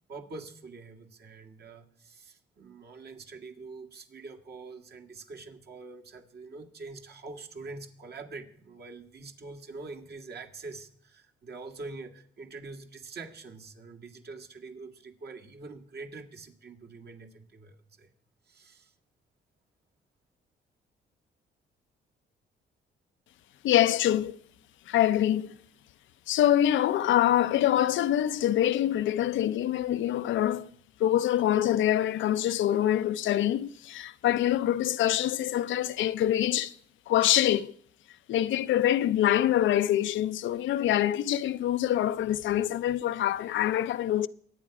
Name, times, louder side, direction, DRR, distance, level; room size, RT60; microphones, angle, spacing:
voice 1, 0.1-18.1 18.4-18.9, right 3 dB, 55° right, 2.0 m, -45 dB
voice 2, 23.6-24.4 24.9-25.5 26.3-30.7 31.0-36.7 37.1-37.7 38.3-44.3, left 12 dB, 75° left, 0.6 m, -25 dB
23.5 x 9.0 x 4.9 m
cardioid pair, 90°, 20 cm